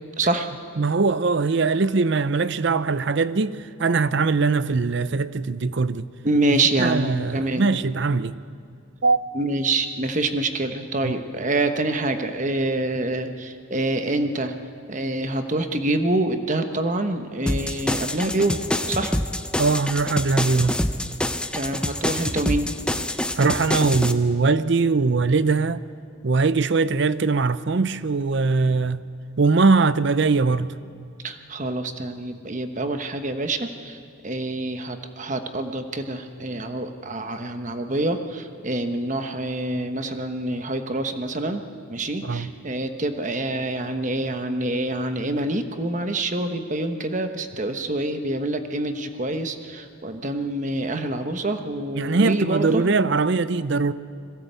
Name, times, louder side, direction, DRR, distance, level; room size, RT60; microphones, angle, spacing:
voice 1, 0.2-0.5 6.2-7.6 9.3-14.5 14.9-19.1 21.5-22.8 31.2-34.0 34.2-41.6 41.9-52.8, right 2 dB, 35° right, 1.2 m, -26 dB
voice 2, 0.8-6.1 6.5-8.4 9.0-9.2 11.0-11.1 19.6-20.8 23.4-25.8 26.2-29.0 29.4-30.7 42.2-42.5 52.0-53.9, right 4 dB, 60° right, 0.6 m, -21 dB
sound 1, 17.5-24.1, left 1 dB, 5° left, 0.6 m, -26 dB
21.5 x 17.0 x 8.2 m
head